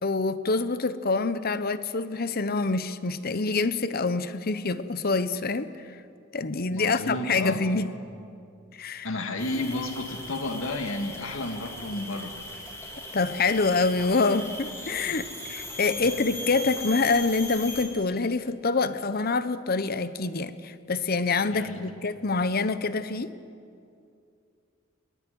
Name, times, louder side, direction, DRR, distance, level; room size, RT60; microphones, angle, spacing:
voice 1, 0.0-5.7 6.3-7.9 8.8-9.1 13.1-23.3, left 3 dB, 45° left, 0.9 m, -26 dB
voice 2, 6.7-7.6 9.0-12.3 21.5-21.8, left 2 dB, 80° left, 2.1 m, -32 dB
sound 1, 9.4-17.9, left 2 dB, 15° left, 3.5 m, -39 dB
22.0 x 21.5 x 9.4 m
head